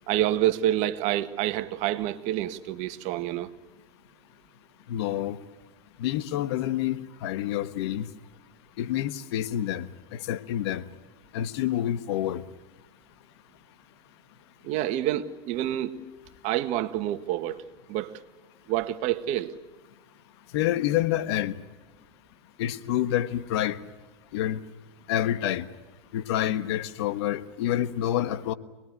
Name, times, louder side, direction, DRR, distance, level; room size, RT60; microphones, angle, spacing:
voice 1, 0.1-3.5 14.6-15.9 16.4-17.6 17.9-18.2 18.7-19.5, right 13 dB, 55° right, 1.6 m, -27 dB
voice 2, 4.9-5.4 6.0-8.1 8.8-10.8 11.3-12.4 20.5-21.5 22.6-23.8 24.3-24.6 25.1-25.7 26.1-28.5, left 12 dB, 70° left, 1.3 m, -28 dB
25.5 x 20.0 x 9.5 m
hypercardioid pair, 95°, 14 cm